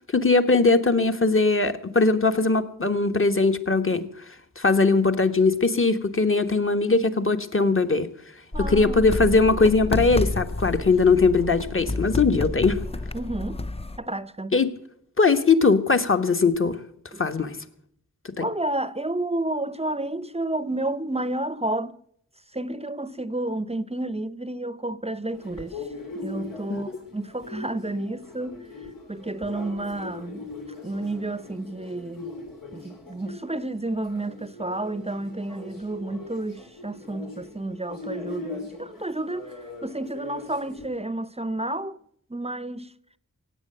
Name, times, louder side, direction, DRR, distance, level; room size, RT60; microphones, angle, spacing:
voice 1, 0.1-4.1 4.6-8.1 8.6-12.8 14.5-14.7 15.2-16.8 17.2-17.6 18.4-18.5 26.7-27.0, left 3 dB, 40° left, 1.3 m, -20 dB
sound 1, 8.5-14.0, left 2 dB, 20° left, 0.6 m, -30 dB
voice 2, 8.5-9.1 13.1-13.6 14.0-14.6 17.1-17.2 18.4-22.0 22.5-25.8 26.2-28.6 29.1-30.5 30.8-32.3 32.7-42.0 42.3-42.9, right 2 dB, 20° right, 0.7 m, -31 dB
sound 2, 25.3-40.9, left 3 dB, 85° left, 3.6 m, -40 dB
17.0 x 8.5 x 7.8 m
wide cardioid pair, 60°, 32 cm